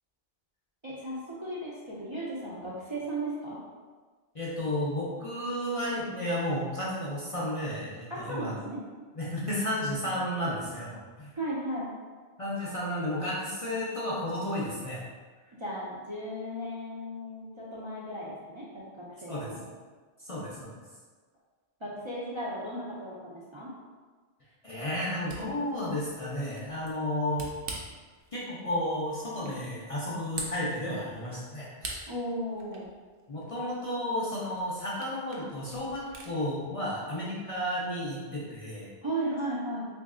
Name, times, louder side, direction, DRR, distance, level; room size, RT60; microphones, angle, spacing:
voice 1, 0.8-3.6 8.1-8.8 11.4-11.9 15.6-19.6 21.8-23.7 32.1-32.9 39.0-39.9, right 1 dB, 35° right, -8 dB, 0.5 m, -36 dB
voice 2, 4.3-8.5 9.1-11.3 12.4-15.0 19.3-19.6 20.2-20.7 24.6-27.5 28.3-32.0 33.3-38.9, left 1 dB, 40° left, -7 dB, 0.6 m, -32 dB
Camera, 25.0-36.3, right 2 dB, 65° right, 0.8 m, -46 dB
3.1 x 2.6 x 3.6 m, 1.4 s
omnidirectional pair, 1.1 m